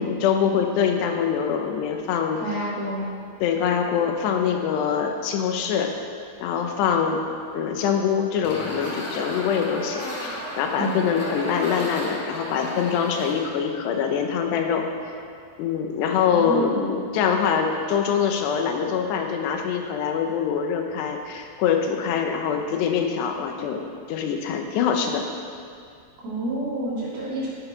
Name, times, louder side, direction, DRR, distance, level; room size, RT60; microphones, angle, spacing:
voice 1, 0.0-2.4 3.4-5.9 6.4-7.2 7.5-14.8 15.6-23.8 24.1-25.2, left 7 dB, 90° left, 4 dB, 3.1 m, -24 dB
voice 2, 2.4-3.1 10.8-11.1 16.2-17.0 26.2-27.5, right 1 dB, 65° right, -8 dB, 5.1 m, -29 dB
sound 1, 8.4-13.3, equal, 40° left, 3.1 m, -34 dB
17.5 x 6.0 x 5.8 m, 2.3 s
omnidirectional pair, 4.8 m